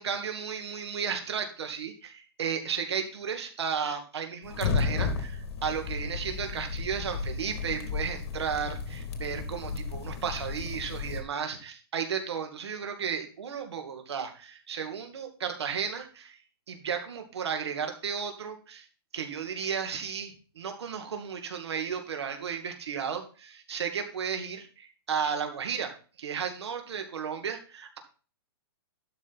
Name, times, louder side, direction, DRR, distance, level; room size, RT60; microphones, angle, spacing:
voice 1, 0.0-16.4 16.7-18.9 19.1-25.9 26.2-28.0, right 7 dB, 90° right, 5 dB, 2.3 m, -34 dB
sound 1, 4.4-11.2, left 5 dB, 80° left, 2.4 m, -33 dB
12.0 x 5.3 x 4.1 m, 0.36 s
hypercardioid pair, 170°, 14 cm